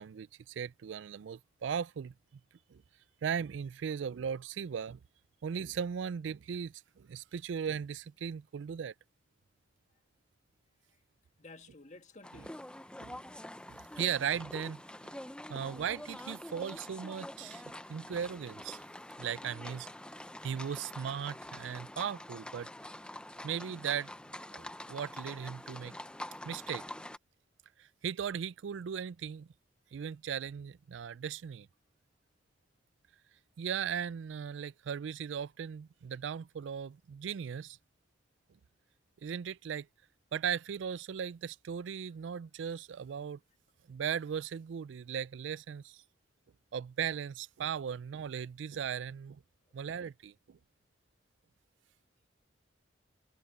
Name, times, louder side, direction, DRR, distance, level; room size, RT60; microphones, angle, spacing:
voice 1, 0.0-2.1 2.7-2.8 3.2-5.0 5.4-8.9 13.0-13.1 13.7-15.2 15.5-17.6 17.9-18.8 19.2-19.9 20.4-22.7 23.4-24.1 24.5-25.9 26.4-26.8 27.8-29.5 29.9-31.7 33.6-37.8 39.2-39.9 40.3-43.4 43.9-46.0 46.7-49.4 49.7-50.6, right 7 dB, 75° right, 0.4 m, -37 dB
voice 2, 11.4-12.9, left 2 dB, 40° left, 1.8 m, -54 dB
sound 1, 12.2-27.2, left 1 dB, 5° left, 0.6 m, -46 dB
head